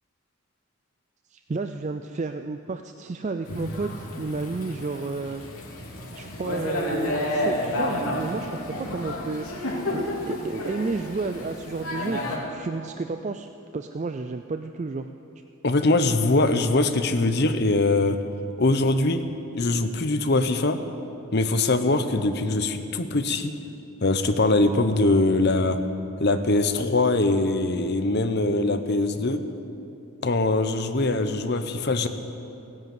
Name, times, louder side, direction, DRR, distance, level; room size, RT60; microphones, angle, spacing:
voice 1, 1.3-5.4 6.1-9.5 9.9-13.5 13.7-15.1, right 3 dB, 30° right, 7 dB, 0.3 m, -31 dB
Thunder / Rain, 3.4-12.4, left 1 dB, 80° left, 2.9 m, -31 dB
voice 2, 15.6-18.2 18.6-19.2 19.5-20.8 21.3-23.5 24.0-25.8 26.2-29.4 30.2-32.1, left 2 dB, 50° left, 9 dB, 0.8 m, -22 dB
16.5 x 10.5 x 7.7 m, 2.8 s
head